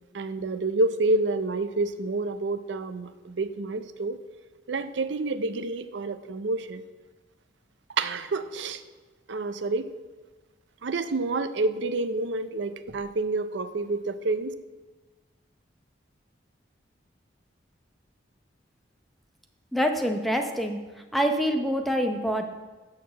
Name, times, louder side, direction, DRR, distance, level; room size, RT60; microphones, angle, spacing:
voice 1, 0.1-4.2 4.7-6.8 8.0-8.8 9.3-9.9 10.8-14.5, right 2 dB, 75° right, 11 dB, 0.5 m, -28 dB
voice 2, 19.7-20.8 21.1-22.4, equal, ahead, 4 dB, 0.7 m, -25 dB
6.6 x 6.5 x 6.9 m, 1.3 s
head